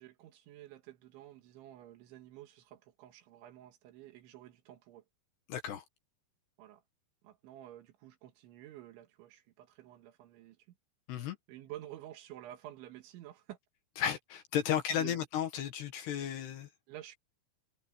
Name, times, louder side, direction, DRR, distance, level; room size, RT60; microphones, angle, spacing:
voice 1, 0.0-5.0 6.6-6.8 7.2-10.8 11.5-13.6 14.7-15.2 16.9-17.2, right 13 dB, 75° right, 3.7 m, -50 dB
voice 2, 5.5-5.8 11.1-11.4 14.0-16.7, left 9 dB, 65° left, 3.3 m, -34 dB
omnidirectional pair, 5.8 m